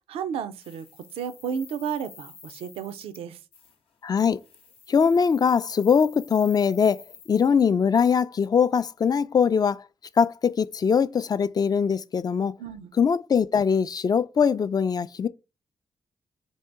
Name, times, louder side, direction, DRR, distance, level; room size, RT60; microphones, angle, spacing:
voice 1, 0.1-0.8 1.1-3.4 12.6-12.9, right 7 dB, 85° right, 0.4 m, -32 dB
sound 1, 0.6-3.2 3.5-3.8 4.3-7.5, left 6 dB, 80° left, 0.8 m, -50 dB
voice 2, 4.0-4.4 4.9-7.0 7.3-9.8 10.2-12.5 13.0-15.3, left 6 dB, 45° left, 0.4 m, -22 dB
2.9 x 2.7 x 4.4 m
supercardioid pair, 40°, 9 cm